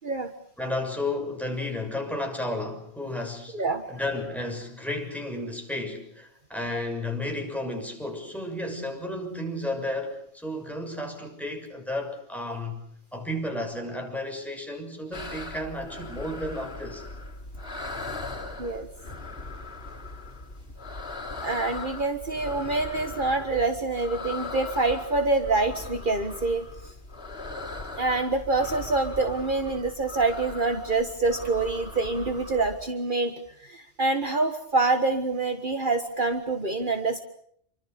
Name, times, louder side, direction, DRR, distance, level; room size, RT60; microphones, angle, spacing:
voice 1, 0.6-12.8 13.1-17.0, left 1 dB, ahead, 3 dB, 6.5 m, -33 dB
sound 1, 15.1-32.8, left 3 dB, 60° left, 3.5 m, -39 dB
voice 2, 21.4-26.7 28.0-33.3 33.6-37.2, right 3 dB, 50° right, 7 dB, 1.8 m, -26 dB
28.0 x 24.5 x 6.9 m, 0.67 s
omnidirectional pair, 1.1 m